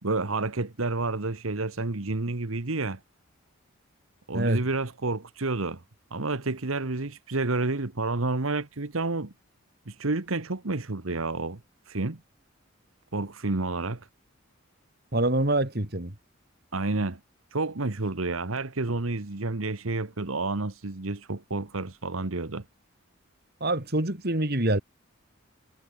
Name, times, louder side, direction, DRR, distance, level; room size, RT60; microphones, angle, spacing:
voice 1, 0.0-3.0 4.3-5.8 6.1-9.3 9.9-11.6 11.9-12.2 13.1-14.1 16.7-17.2 17.5-22.6, right 3 dB, 75° right, 1.4 m, -30 dB
voice 2, 15.1-16.1 23.6-24.8, right 1 dB, 50° right, 2.9 m, -25 dB
head